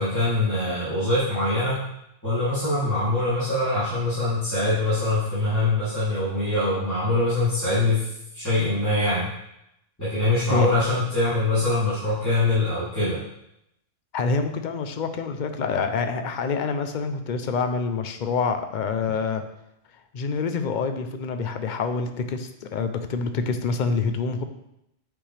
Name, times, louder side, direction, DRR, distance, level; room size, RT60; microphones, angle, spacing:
voice 1, 0.0-1.8 2.2-8.1 8.3-9.3 10.0-13.2, left 2 dB, 15° left, -15 dB, 3.0 m, -23 dB
voice 2, 14.1-19.4 20.1-24.4, left 4 dB, 50° left, 8 dB, 0.6 m, -26 dB
8.8 x 5.3 x 3.3 m, 0.83 s
omnidirectional pair, 1.3 m